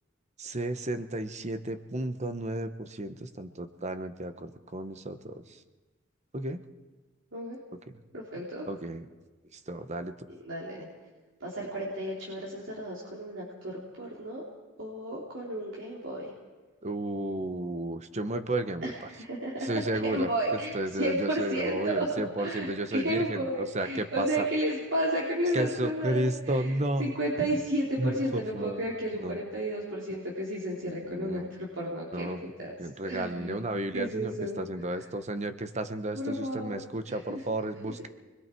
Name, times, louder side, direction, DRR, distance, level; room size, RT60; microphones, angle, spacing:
voice 1, 0.4-5.6 6.3-6.6 8.4-9.1 9.5-10.1 16.8-19.1 19.6-24.4 25.5-27.1 27.4-27.6 28.0-28.8 29.1-29.4 30.8-31.5 32.1-32.4 32.8-38.1, right 1 dB, 35° right, 9 dB, 1.1 m, -33 dB
voice 2, 8.1-8.7 10.3-10.9 11.4-14.4 14.8-16.2 18.8-18.9 19.2-26.7 27.0-32.3 32.6-32.7 33.0-33.6 33.9-34.6 36.1-36.8 37.1-37.4 37.8-38.1, right 1 dB, 75° right, -4 dB, 3.5 m, -32 dB
29.0 x 21.5 x 4.6 m, 1.2 s
head